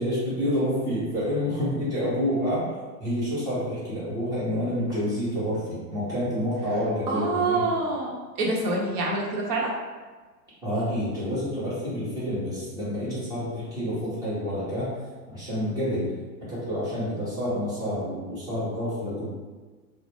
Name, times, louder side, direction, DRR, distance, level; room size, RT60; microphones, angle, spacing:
voice 1, 0.0-2.7 3.0-7.8 10.6-14.9 15.3-16.1 16.4-19.3, equal, 10° right, -10 dB, 0.4 m, -28 dB
voice 2, 7.1-9.7, right 3 dB, 65° right, -2 dB, 0.7 m, -26 dB
2.1 x 2.0 x 2.8 m, 1.3 s
hypercardioid pair, 110°, 50 cm